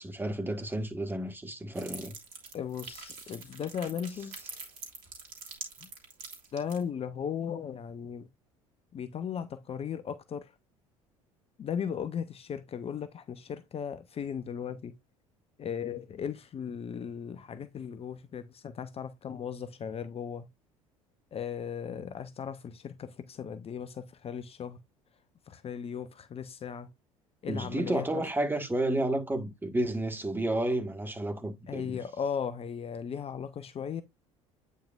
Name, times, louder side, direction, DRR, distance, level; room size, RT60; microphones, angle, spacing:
voice 1, 0.0-2.1 27.5-32.0, right 1 dB, 10° right, 1.6 m, -31 dB
sound 1, 1.7-6.8, right 4 dB, 55° right, 3.1 m, -44 dB
voice 2, 2.5-4.4 5.8-5.9 6.5-8.3 8.9-10.5 11.6-14.9 15.6-20.5 21.3-24.8 25.5-26.9 27.4-28.3 31.7-34.0, left 7 dB, 35° left, 0.8 m, -37 dB
8.9 x 5.4 x 2.4 m
figure-of-eight pair, 65°, 17 cm